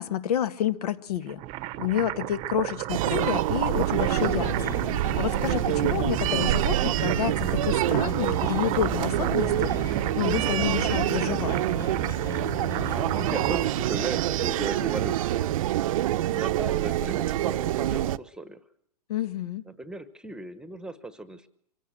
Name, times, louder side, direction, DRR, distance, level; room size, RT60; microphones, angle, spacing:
voice 1, 0.0-1.4 1.8-11.6 19.1-19.6, left 10 dB, 70° left, 11 dB, 1.7 m, -29 dB
sound 1, 1.2-15.0, right 17 dB, 30° right, 0.9 m, -35 dB
sound 2, 2.9-18.2, right 14 dB, 55° right, 0.8 m, -26 dB
sound 3, 4.0-13.6, left 6 dB, 15° left, 1.6 m, -37 dB
voice 2, 12.6-15.5 16.3-18.7 19.7-21.5, right 1 dB, 5° right, 12 dB, 1.2 m, -37 dB
25.0 x 16.5 x 7.7 m, 0.72 s
hypercardioid pair, 145°, 20 cm